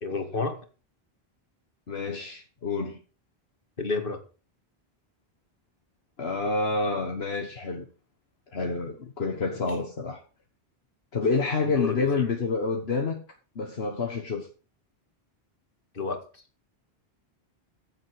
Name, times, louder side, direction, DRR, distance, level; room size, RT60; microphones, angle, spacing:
voice 1, 0.0-0.6 3.8-4.2 11.6-12.3 15.9-16.4, left 4 dB, 60° left, 2.4 m, -30 dB
voice 2, 1.9-3.0 6.2-7.9 8.5-10.2 11.1-13.2 13.6-14.5, left 4 dB, 75° left, 1.7 m, -28 dB
15.0 x 7.5 x 4.9 m
omnidirectional pair, 1.1 m